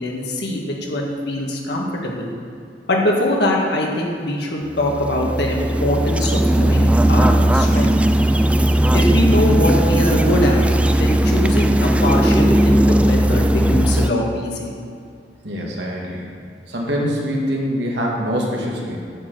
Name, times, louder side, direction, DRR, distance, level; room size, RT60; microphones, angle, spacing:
voice 1, 0.0-2.3 2.9-7.9 8.9-10.6 11.0-14.7, left 1 dB, 70° left, -1 dB, 1.7 m, -22 dB
sound 1, 4.7-14.1, right 1 dB, 5° right, 0.3 m, -17 dB
voice 2, 15.4-16.3 16.7-19.0, equal, 75° right, -2 dB, 1.8 m, -24 dB
10.0 x 4.9 x 7.6 m, 2.4 s
head